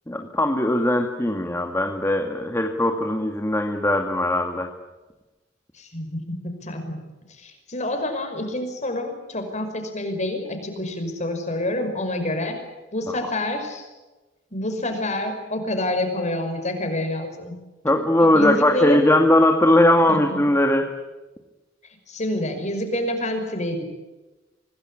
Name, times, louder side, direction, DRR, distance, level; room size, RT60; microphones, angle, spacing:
voice 1, 0.1-4.7 17.8-20.9, left 1 dB, 15° left, 4 dB, 1.9 m, -19 dB
voice 2, 5.7-7.0 7.4-12.6 12.9-13.9 14.5-17.5 18.2-19.0 20.1-20.4 22.1-23.8, left 1 dB, 40° left, 6 dB, 5.6 m, -27 dB
26.0 x 19.5 x 9.9 m, 1.1 s
head